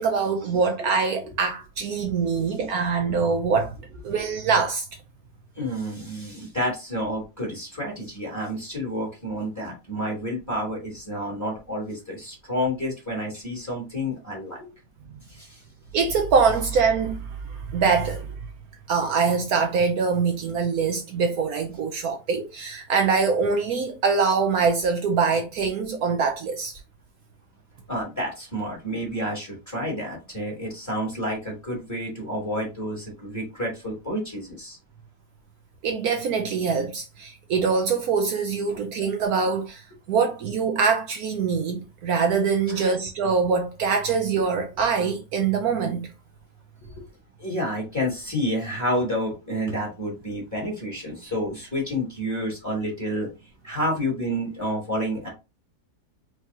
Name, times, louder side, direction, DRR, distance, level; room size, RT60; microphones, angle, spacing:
voice 1, 0.0-3.7 4.0-4.9 15.9-18.3 18.9-26.7 35.8-39.8 40.1-46.1, right 5 dB, 70° right, 1.1 m, -24 dB
voice 2, 5.6-14.7 15.3-15.6 27.9-34.8 38.7-38.8 42.7-42.9 46.8-47.0 47.4-53.3 53.6-55.3, equal, 10° left, 2.6 m, -29 dB
4.8 x 3.3 x 2.7 m
omnidirectional pair, 1.7 m